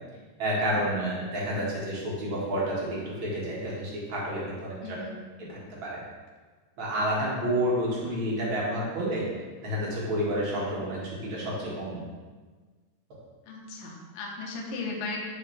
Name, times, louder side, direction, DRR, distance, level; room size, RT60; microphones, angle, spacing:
voice 1, 0.4-5.0 5.4-6.0 6.8-9.2 9.6-12.0, equal, 45° right, -5 dB, 2.0 m, -30 dB
voice 2, 4.8-5.3 13.5-15.2, left 3 dB, 75° left, 0 dB, 2.5 m, -36 dB
10.5 x 5.0 x 3.3 m, 1.4 s
omnidirectional pair, 4.0 m